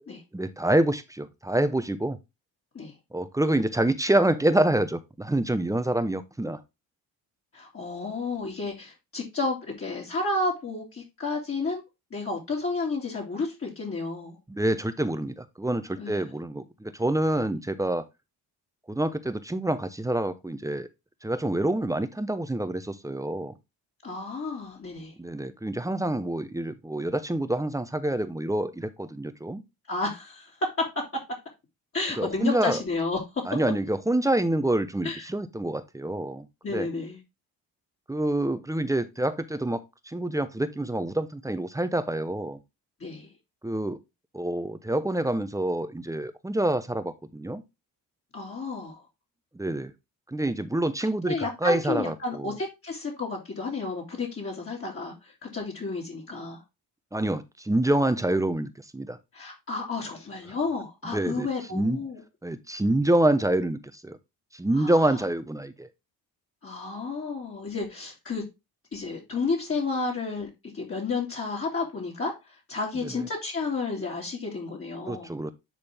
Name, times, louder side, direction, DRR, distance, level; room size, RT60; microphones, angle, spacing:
voice 1, 0.3-2.2 3.1-6.6 14.5-18.0 18.9-20.9 21.2-23.5 25.2-29.6 32.2-32.8 33.5-36.9 38.1-42.6 43.6-44.0 44.3-47.6 49.5-49.9 50.3-52.5 57.1-59.2 61.1-62.0 62.4-64.2 64.5-65.9 73.0-73.1 75.1-75.5, right 1 dB, 10° right, 0.8 m, -27 dB
voice 2, 7.5-11.8 12.1-14.4 16.0-16.2 24.0-25.1 29.9-30.5 31.9-33.2 35.0-35.3 36.6-37.2 43.0-43.3 48.3-49.0 51.3-56.6 59.3-62.2 64.8-65.1 66.6-68.4 68.9-70.5 70.7-75.3, left 3 dB, 35° left, 2.6 m, -31 dB
10.0 x 3.9 x 3.4 m
cardioid pair, 100°, 38 cm